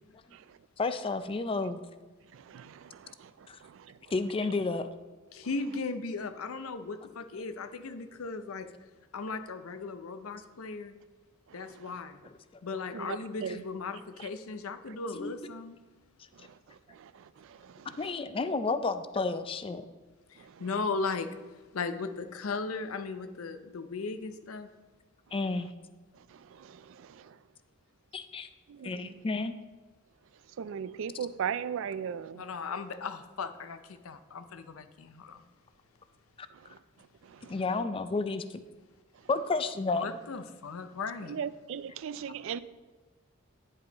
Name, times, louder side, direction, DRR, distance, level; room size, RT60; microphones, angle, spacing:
voice 1, 0.8-1.8 3.5-3.6 4.1-4.9 15.1-15.3 18.0-19.8 25.3-25.7 28.1-28.5 28.8-29.6 37.5-38.6 39.3-40.1, left 3 dB, 25° left, 0.4 m, -31 dB
voice 2, 2.3-4.1 11.5-12.0 12.9-13.6 14.2-14.3 16.3-18.2 20.4-20.7 25.3-25.4 26.2-27.4 28.7-29.2 30.5-32.5 36.5-37.8 39.1-39.3 41.2-42.6, right 7 dB, 65° right, 0.3 m, -40 dB
voice 3, 5.3-8.7 9.1-10.9 11.5-12.2 12.6-15.8 20.3-21.3 21.7-24.7 32.4-35.4 40.0-41.4, left 4 dB, 90° left, 0.6 m, -37 dB
9.8 x 5.5 x 4.0 m
head